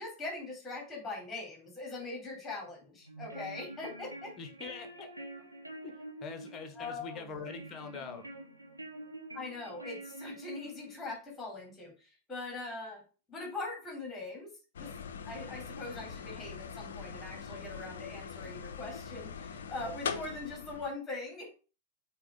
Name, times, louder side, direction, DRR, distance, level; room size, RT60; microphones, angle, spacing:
voice 1, 0.0-4.3 6.7-7.4 9.3-13.0 13.3-14.5 14.8-14.9 15.2-21.5, left 3 dB, 10° left, 0 dB, 3.3 m, -42 dB
sound 1, 3.0-11.1, right 2 dB, 85° right, 1.0 m, -47 dB
voice 2, 4.4-5.1 5.8-8.2, left 5 dB, 30° left, 7 dB, 1.3 m, -44 dB
sound 2, 14.7-20.9, left 6 dB, 65° left, 0.7 m, -42 dB
7.7 x 3.1 x 5.0 m, 0.34 s
figure-of-eight pair, 90°, 0 cm